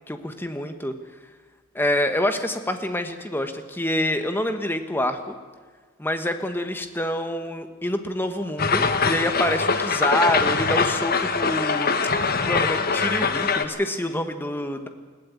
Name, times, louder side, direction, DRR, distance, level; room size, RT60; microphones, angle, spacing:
voice 1, 0.1-1.0 1.7-5.3 6.0-11.9 12.4-14.9, left 1 dB, 10° left, 7 dB, 1.3 m, -26 dB
sound 1, 8.6-13.7, left 5 dB, 45° left, 1.2 m, -23 dB
20.5 x 16.5 x 8.5 m, 1.4 s
head